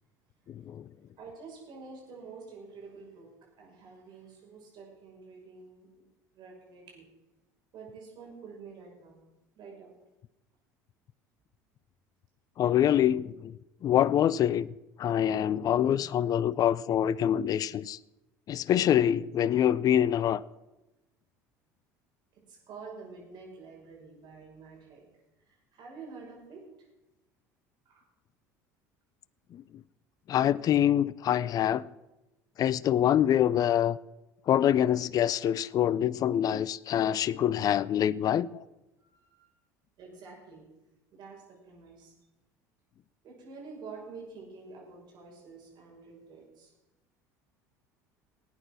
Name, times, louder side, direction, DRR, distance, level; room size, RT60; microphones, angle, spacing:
voice 1, 0.5-0.8 12.6-13.5 13.8-14.7 15.0-18.0 18.5-20.4 29.5-29.6 30.3-31.8 32.6-34.0 34.5-38.6, left 10 dB, 45° left, 0.5 m, -25 dB
voice 2, 1.2-3.3 3.6-5.9 6.3-7.0 7.7-9.2 9.5-9.9 22.5-25.0 25.5-26.6 27.9-28.0 39.0-39.5 40.0-40.6 41.1-42.1 43.2-46.7, right 4 dB, 50° right, 6.2 m, -48 dB
18.0 x 9.0 x 6.2 m
hypercardioid pair, 70°, 9 cm